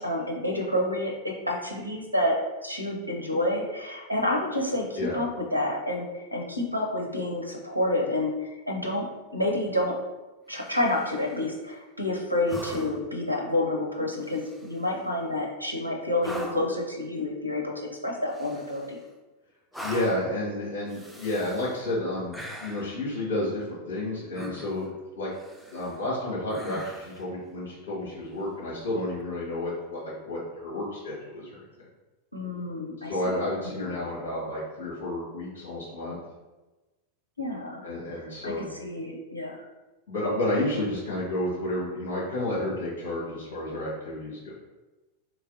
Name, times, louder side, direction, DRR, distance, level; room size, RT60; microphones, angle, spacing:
voice 1, 0.0-9.0 9.3-9.9 10.5-19.0 32.3-33.1 33.8-33.9 37.4-39.6, left 1 dB, 90° left, 1 dB, 0.6 m, -29 dB
sound 1, 10.5-11.3 12.5-13.2 14.1-14.9 16.2-16.8 18.3-19.1 19.7-20.3 20.9-21.8 22.3-22.9 24.3-24.9 25.3-26.0 26.5-27.3 29.1-29.2, equal, ahead, 0.4 m, -42 dB
voice 2, 19.8-25.3 25.7-31.5 33.0-36.2 37.8-38.7 40.1-44.5, left 1 dB, 55° left, -8 dB, 1.4 m, -31 dB
3.2 x 3.2 x 2.6 m, 1.1 s
figure-of-eight pair, 90°, 0 cm